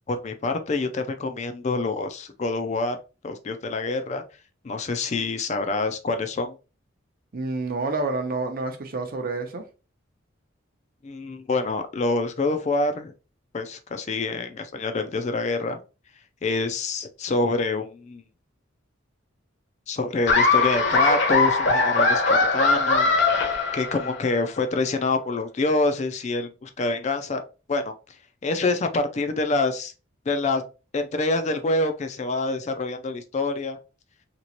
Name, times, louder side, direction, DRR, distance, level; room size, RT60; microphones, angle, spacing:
voice 1, 0.1-3.0 3.2-4.2 4.6-6.5 11.0-13.1 13.5-15.8 16.4-18.2 19.9-23.1 23.7-27.4 27.7-27.9 28.4-29.9 30.3-30.6 30.9-33.8, left 3 dB, 35° left, 0.4 m, -26 dB
voice 2, 7.3-9.6, right 3 dB, 45° right, 0.7 m, -28 dB
Laughter, 20.3-24.3, left 3 dB, 60° left, 0.8 m, -20 dB
3.0 x 2.9 x 2.8 m
head